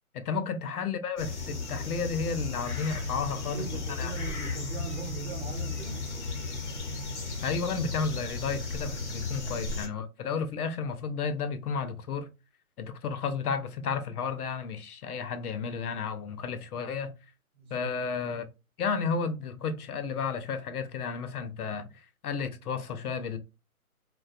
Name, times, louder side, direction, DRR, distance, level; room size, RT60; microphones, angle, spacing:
voice 1, 0.1-4.1 7.4-12.3 12.8-17.1 17.7-18.5 18.8-21.9 22.2-23.4, left 5 dB, 85° left, 0.6 m, -32 dB
sound 1, 1.2-9.9, left 3 dB, 50° left, 0.8 m, -35 dB
voice 2, 3.4-6.0 9.0-9.1 17.5-17.9, right 5 dB, 45° right, 0.8 m, -41 dB
2.3 x 2.2 x 2.5 m
hypercardioid pair, 160°, 44 cm